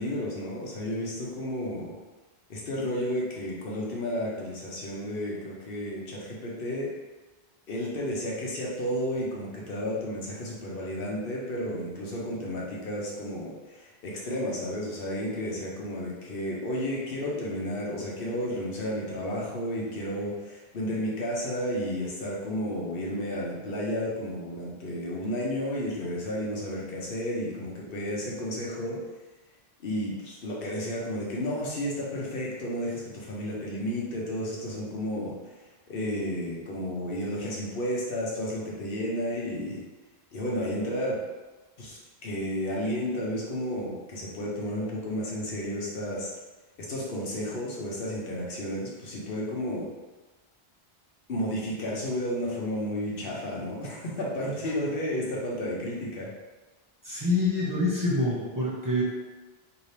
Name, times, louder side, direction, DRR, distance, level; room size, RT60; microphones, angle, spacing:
voice 1, 0.0-1.9 2.5-6.9 7.7-29.0 29.8-35.4 35.9-39.8 40.3-41.2 41.8-46.3 46.8-49.9 51.3-56.3, equal, 65° left, -4 dB, 1.0 m, -32 dB
voice 2, 57.0-59.0, left 2 dB, 20° right, -8 dB, 0.8 m, -26 dB
3.2 x 2.9 x 2.8 m, 1.2 s
omnidirectional pair, 1.0 m